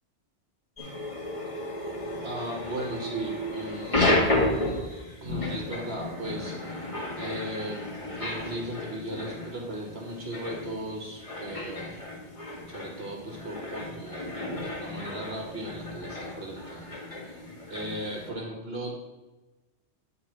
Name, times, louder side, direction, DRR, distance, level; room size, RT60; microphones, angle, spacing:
sound 1, 0.8-18.3, left 1 dB, 30° left, 1.7 m, -32 dB
voice 1, 2.2-4.1 5.2-6.8 7.2-7.8 8.2-12.0 12.7-16.9 17.2-17.4 17.7-18.9, right 1 dB, 65° right, 0 dB, 1.8 m, -37 dB
9.5 x 3.9 x 6.1 m, 1.1 s
omnidirectional pair, 1.1 m